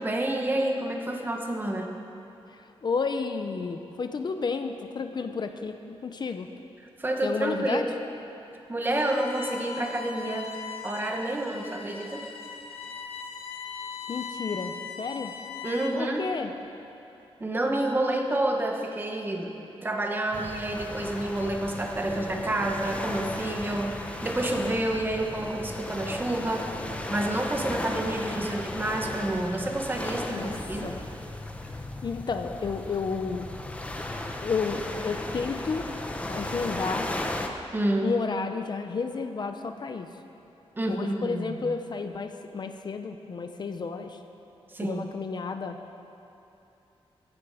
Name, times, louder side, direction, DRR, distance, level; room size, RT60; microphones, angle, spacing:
voice 1, 0.0-1.9 7.0-7.9 8.7-10.5 10.8-12.2 15.6-16.3 17.4-19.5 19.8-30.9 37.7-38.2 40.8-41.6 44.7-45.1, right 1 dB, 20° right, 2 dB, 1.4 m, -29 dB
voice 2, 2.5-6.5 7.2-7.9 14.1-15.3 15.9-16.5 30.3-31.0 32.0-33.5 34.4-35.9 36.3-37.1 38.0-40.2 40.9-44.2 44.8-45.8, left 4 dB, 45° left, 7 dB, 0.7 m, -31 dB
Bowed string instrument, 8.9-16.1, left 5 dB, 70° left, 1.4 m, -39 dB
sound 1, 20.3-37.5, left 1 dB, 15° left, 1.0 m, -35 dB
16.0 x 16.0 x 5.0 m, 3.0 s
wide cardioid pair, 170°, 10 cm